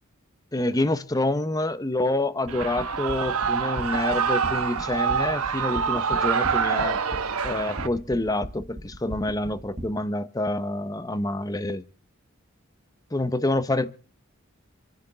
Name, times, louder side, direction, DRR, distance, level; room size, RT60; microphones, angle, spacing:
voice 1, 0.5-7.0 7.4-11.8 13.1-14.0, left 2 dB, 15° left, 0.6 m, -27 dB
sound 1, 2.4-9.9, equal, 30° right, 1.8 m, -37 dB
Shout / Cheering, 2.5-7.9, right 6 dB, 80° right, 1.1 m, -26 dB
26.5 x 9.6 x 3.8 m
head